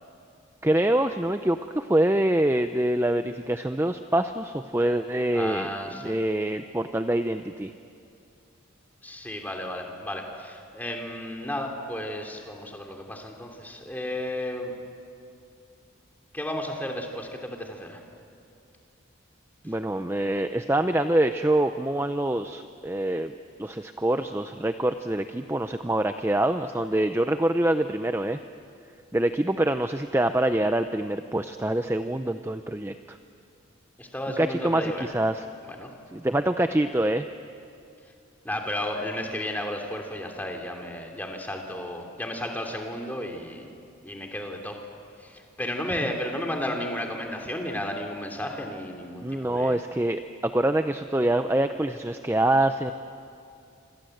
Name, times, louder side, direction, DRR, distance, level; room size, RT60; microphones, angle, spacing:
voice 1, 0.6-5.7 6.0-7.7 19.6-23.3 23.6-28.4 29.1-33.2 34.4-35.4 36.1-37.3 49.2-52.9, right 1 dB, 10° right, 8 dB, 0.5 m, -25 dB
voice 2, 5.3-6.1 9.0-14.7 16.3-18.0 34.0-35.2 35.8-35.9 38.4-43.7 44.0-44.8 45.2-49.8, left 1 dB, 10° left, 2 dB, 2.9 m, -33 dB
27.5 x 25.0 x 7.9 m, 2.5 s
head